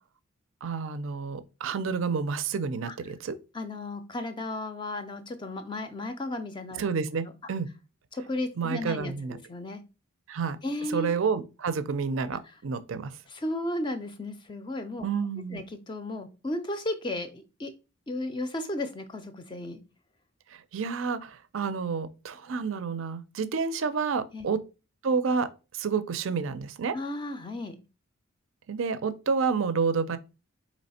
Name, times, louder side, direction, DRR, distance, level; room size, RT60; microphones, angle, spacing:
voice 1, 0.6-3.4 6.8-7.7 8.6-9.4 10.3-10.6 10.9-13.2 15.0-15.6 20.5-24.6 25.0-27.0 28.7-30.2, right 5 dB, 65° right, 0.4 m, -29 dB
voice 2, 3.5-6.8 8.1-9.8 10.6-11.1 13.3-15.1 15.5-17.7 18.1-19.8 24.3-24.5 26.9-27.8, left 1 dB, 20° left, 0.4 m, -34 dB
4.2 x 3.1 x 4.1 m
head